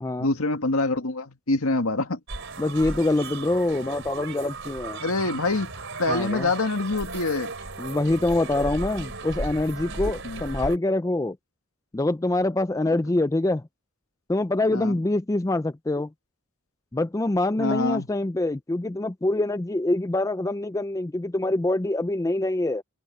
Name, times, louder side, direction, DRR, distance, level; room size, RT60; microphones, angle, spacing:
voice 1, 0.2-2.2 5.0-5.7 6.0-7.5 10.2-10.4 14.7-15.0 17.6-18.1, left 2 dB, 75° left, 1.8 m, -25 dB
sound 1, 2.3-10.8, right 3 dB, 60° right, 4.3 m, -35 dB
voice 2, 2.6-5.0 6.1-6.5 7.8-11.4 11.9-13.6 14.3-16.1 16.9-22.8, left 2 dB, 15° left, 0.4 m, -25 dB
head